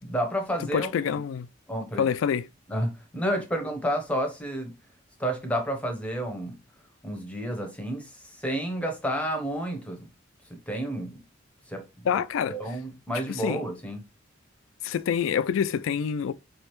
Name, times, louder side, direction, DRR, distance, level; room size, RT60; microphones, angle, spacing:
voice 1, 0.0-0.9 1.7-2.1 2.7-4.7 5.2-6.6 7.0-10.1 10.5-11.2 11.7-11.8 12.1-12.2 12.5-14.0, equal, 5° left, 0.7 m, -30 dB
voice 2, 0.7-1.5 2.0-2.5 12.1-12.5 13.3-13.6 14.8-16.3, left 7 dB, 80° left, 0.3 m, -26 dB
4.8 x 3.2 x 3.0 m
head